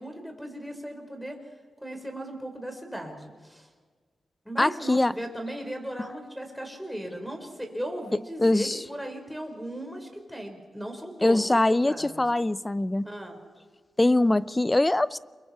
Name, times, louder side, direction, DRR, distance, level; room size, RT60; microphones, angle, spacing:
voice 1, 0.0-1.4 1.8-3.7 4.4-12.2 13.0-13.4, equal, ahead, 3 dB, 4.6 m, -37 dB
voice 2, 4.6-5.1 8.4-8.8 11.2-13.0 14.0-15.2, left 2 dB, 15° left, 17 dB, 0.5 m, -22 dB
29.0 x 22.5 x 4.4 m, 1.5 s
cardioid pair, 85°, 0 cm